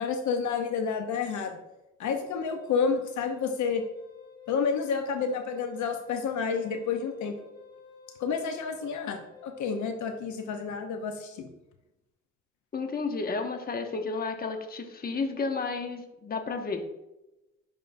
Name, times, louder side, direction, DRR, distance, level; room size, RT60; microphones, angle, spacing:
voice 1, 0.0-1.6 2.0-3.8 4.5-7.4 8.2-11.5, left 5 dB, 75° left, 5 dB, 0.9 m, -30 dB
Wind instrument woodwind instrument, 2.1-10.0, left 6 dB, 15° left, 1.2 m, -52 dB
voice 2, 12.7-16.8, left 4 dB, 30° left, 5 dB, 0.9 m, -32 dB
10.5 x 3.7 x 2.6 m, 0.94 s
cardioid pair, 90°, 30 cm